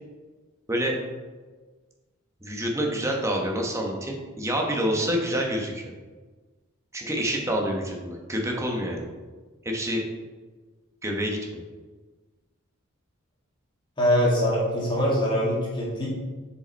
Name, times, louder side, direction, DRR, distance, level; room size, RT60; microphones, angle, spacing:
voice 1, 2.4-5.8 6.9-9.1 9.6-10.0 11.0-11.6, equal, 15° right, 0 dB, 1.1 m, -27 dB
voice 2, 14.0-16.1, equal, 25° left, -5 dB, 2.2 m, -23 dB
6.8 x 5.2 x 4.1 m, 1.3 s
head